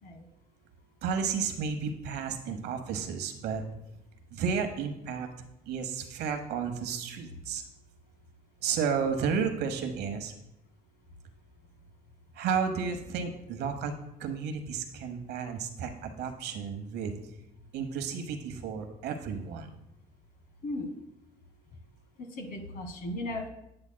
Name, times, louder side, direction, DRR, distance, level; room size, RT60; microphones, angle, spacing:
voice 1, 1.0-3.6 4.3-5.3 5.7-7.6 8.6-10.3 12.3-13.9 14.2-17.1 17.7-19.7, right 6 dB, 80° right, 7 dB, 1.0 m, -32 dB
voice 2, 20.6-20.9 22.3-23.5, left 1 dB, 60° left, 4 dB, 1.6 m, -36 dB
8.8 x 8.5 x 2.2 m, 0.84 s
cardioid pair, 110°, 17 cm